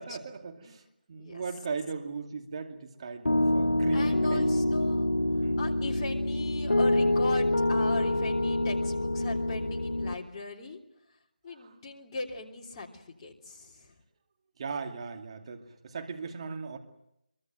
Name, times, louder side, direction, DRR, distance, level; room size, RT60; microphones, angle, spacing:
voice 1, 0.0-4.5 5.4-5.6 11.5-11.7 14.6-16.8, right 5 dB, 35° right, 4 dB, 2.6 m, -38 dB
Piano, 3.3-10.1, left 1 dB, 85° left, 1.3 m, -26 dB
voice 2, 3.9-5.1 5.4-10.8 11.4-13.9, left 2 dB, 25° left, -1 dB, 3.2 m, -39 dB
23.5 x 23.5 x 7.8 m, 0.81 s
figure-of-eight pair, 160°, 5 cm